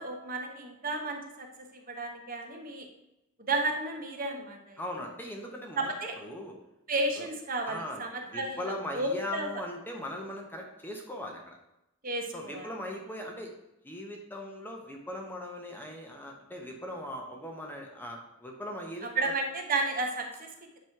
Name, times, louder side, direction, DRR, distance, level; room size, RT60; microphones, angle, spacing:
voice 1, 0.0-1.5 1.7-2.9 3.5-4.8 5.8-6.1 6.9-9.5 12.0-12.7 19.0-20.5, right 2 dB, 40° right, 2 dB, 1.1 m, -32 dB
voice 2, 4.8-5.9 6.2-6.5 7.2-7.3 7.7-11.6 12.3-13.5 13.8-19.1, left 1 dB, 10° left, 1 dB, 0.9 m, -39 dB
9.3 x 3.1 x 5.8 m, 0.89 s
head